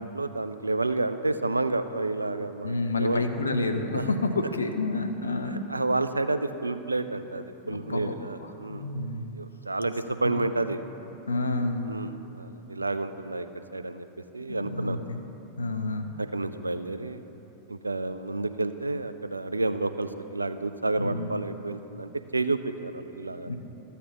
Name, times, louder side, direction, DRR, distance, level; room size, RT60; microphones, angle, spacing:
voice 1, 0.0-3.2 3.9-4.0 5.5-8.9 9.3-10.8 11.8-13.5 13.7-14.1 14.3-15.0 16.2-17.2 17.7-23.5, right 2 dB, 80° right, 11 dB, 0.3 m, -30 dB
voice 2, 2.6-5.7 7.7-8.1 8.4-9.3 10.2-10.4 11.3-11.9 14.5-15.2 15.6-16.1 21.0-21.3 23.5-23.6, left 2 dB, 75° left, 6 dB, 0.6 m, -29 dB
13.5 x 8.2 x 3.0 m, 3.0 s
figure-of-eight pair, 90°, 0 cm